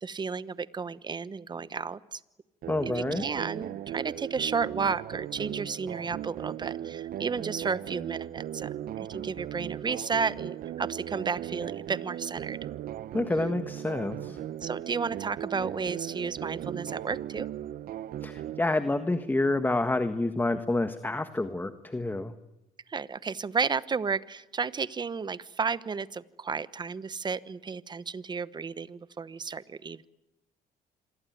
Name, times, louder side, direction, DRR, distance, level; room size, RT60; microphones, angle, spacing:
voice 1, 0.0-2.2 2.8-12.6 14.6-17.5 22.9-30.1, right 5 dB, 25° right, 17 dB, 1.1 m, -32 dB
sound 1, 2.6-18.6, right 12 dB, 60° right, 0.9 m, -37 dB
voice 2, 2.7-3.2 13.1-14.4 18.2-22.3, left 2 dB, 10° left, 10 dB, 1.5 m, -28 dB
27.5 x 22.0 x 9.3 m, 0.99 s
cardioid pair, 110°, 17 cm